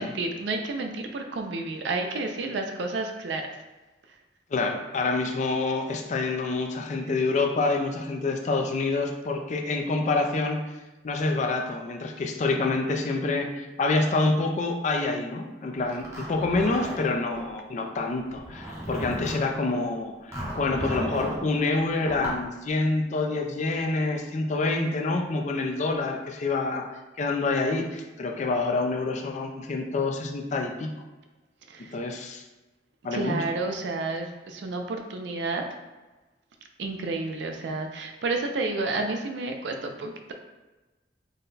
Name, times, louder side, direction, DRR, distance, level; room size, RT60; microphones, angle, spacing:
voice 1, 0.0-3.5 31.7-32.0 33.1-35.6 36.8-40.3, right 3 dB, 75° right, 4 dB, 0.4 m, -30 dB
voice 2, 4.5-10.6 11.0-26.8 27.2-30.9 31.9-32.4 33.0-33.4, left 3 dB, 40° left, 3 dB, 0.4 m, -27 dB
Zipper (clothing), 15.9-17.4 18.3-19.5 20.3-21.4 22.0-22.4, equal, 15° right, 0.8 m, -35 dB
3.9 x 2.2 x 3.9 m, 1.2 s
head